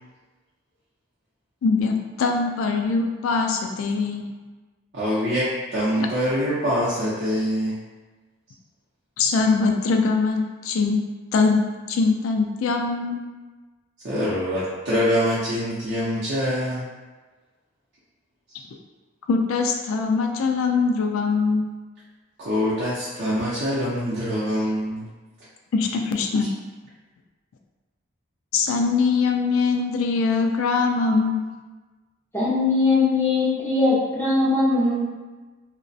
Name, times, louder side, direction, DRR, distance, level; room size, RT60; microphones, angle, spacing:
voice 1, 1.6-4.3 9.2-11.0 11.3-11.6 11.9-13.2 19.3-21.7 25.7-26.5 28.5-31.4, left 4 dB, 80° left, 3 dB, 0.3 m, -22 dB
voice 2, 4.9-7.8 14.0-16.9 22.4-25.1, equal, 55° right, -10 dB, 0.5 m, -24 dB
voice 3, 32.3-35.0, left 3 dB, 10° left, -8 dB, 0.4 m, -20 dB
2.3 x 2.0 x 2.6 m, 1.3 s
head